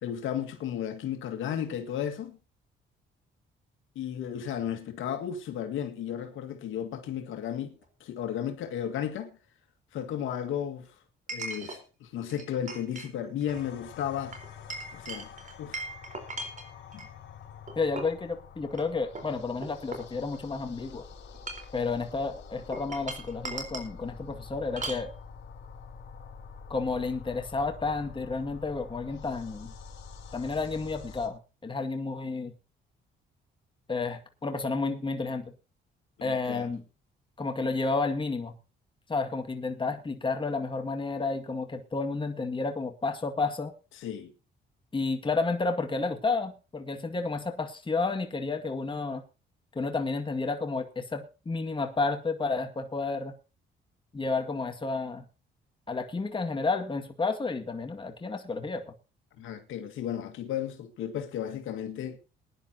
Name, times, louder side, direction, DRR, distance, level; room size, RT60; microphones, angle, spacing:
voice 1, 0.0-2.4 4.0-7.7 8.0-9.3 9.9-10.9 11.3-14.4 14.9-15.3 15.6-15.8 16.9-17.1 36.2-36.7 44.0-44.3 59.4-62.2, left 9 dB, 85° left, 1.9 m, -34 dB
Chink clink, 7.8-7.9 11.3-11.8 12.3-13.1 13.4-13.6 14.3-17.1 17.7-18.2 18.7-18.8 19.2-20.6 21.3-21.8 22.7-23.9 24.8-25.1, right 3 dB, 40° right, 4.2 m, -39 dB
sound 1, 13.5-31.3, left 6 dB, 65° left, 4.0 m, -47 dB
voice 2, 17.8-21.0 21.7-25.1 26.7-29.7 30.3-32.5 33.9-35.5 36.2-36.8 37.4-38.6 39.1-43.7 44.9-49.2 49.7-53.3 54.1-55.2 55.9-58.9, left 3 dB, 25° left, 2.0 m, -31 dB
21.5 x 10.5 x 2.8 m
cardioid pair, 90°, 20 cm